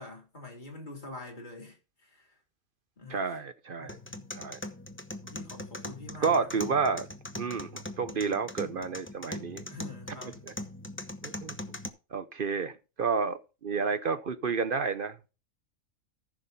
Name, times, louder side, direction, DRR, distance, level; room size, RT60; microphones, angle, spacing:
voice 1, 0.0-2.3 3.0-3.4 3.8-4.3 5.2-6.7 8.1-8.3 9.7-10.4, left 2 dB, 35° left, 3.7 m, -46 dB
voice 2, 3.1-4.0 4.3-4.6 6.2-7.1 7.4-9.6 10.5-10.6 11.2-11.6 12.1-15.2, right 5 dB, 50° right, 0.8 m, -30 dB
sound 1, 3.9-11.9, left 1 dB, 15° left, 0.6 m, -41 dB
14.0 x 6.1 x 4.2 m
omnidirectional pair, 1.5 m